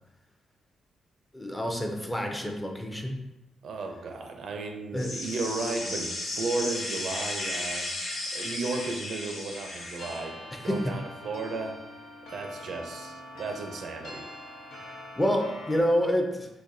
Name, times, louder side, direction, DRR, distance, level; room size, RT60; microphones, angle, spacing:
voice 1, 1.3-3.2 4.9-5.1 10.7-10.8 14.8-16.5, equal, 10° left, 2 dB, 0.4 m, -28 dB
voice 2, 3.6-7.9 8.3-10.3 10.6-11.8 12.3-14.3, right 3 dB, 65° right, 4 dB, 0.4 m, -34 dB
sound 1, 5.0-10.2, left 1 dB, 65° left, 1.1 m, -34 dB
sound 2, 10.0-15.8, left 1 dB, 90° left, 0.8 m, -43 dB
4.0 x 2.6 x 2.6 m, 0.96 s
cardioid pair, 115°, 0 cm